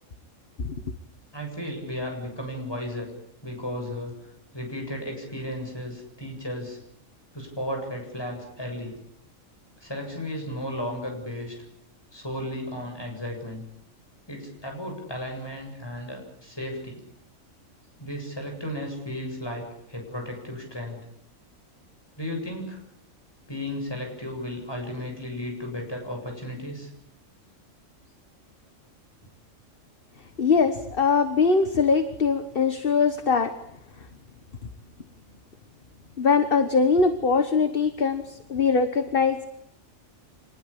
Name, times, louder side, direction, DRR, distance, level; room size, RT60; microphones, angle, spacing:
voice 1, 1.3-3.1 3.4-4.1 4.5-6.8 7.3-8.9 9.8-11.5 12.1-13.6 14.3-17.0 18.0-21.0 22.2-22.8 23.5-26.9, left 1 dB, 20° left, 2 dB, 7.8 m, -34 dB
voice 2, 30.4-33.6 36.2-39.4, left 5 dB, 45° left, 9 dB, 1.5 m, -22 dB
26.0 x 20.5 x 8.7 m, 0.76 s
omnidirectional pair, 1.4 m